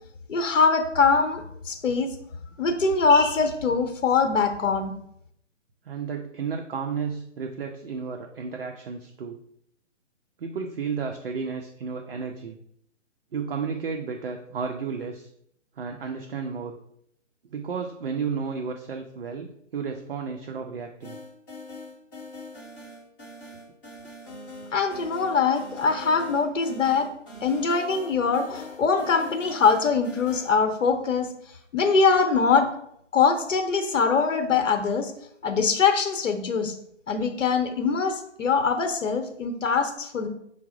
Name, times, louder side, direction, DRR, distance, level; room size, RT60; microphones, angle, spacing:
voice 1, 0.3-2.1 2.6-4.9 24.7-27.1 27.4-31.3 31.7-32.7 33.1-35.1 35.4-36.7 37.1-40.3, left 5 dB, 85° left, 6 dB, 0.8 m, -23 dB
voice 2, 5.8-9.4 10.4-12.6 13.3-15.3 15.8-16.8 17.5-21.2, right 5 dB, 50° right, 3 dB, 0.5 m, -32 dB
sound 1, 21.0-30.6, left 1 dB, 20° left, 0.8 m, -42 dB
5.7 x 2.0 x 4.7 m, 0.72 s
hypercardioid pair, 160°, 37 cm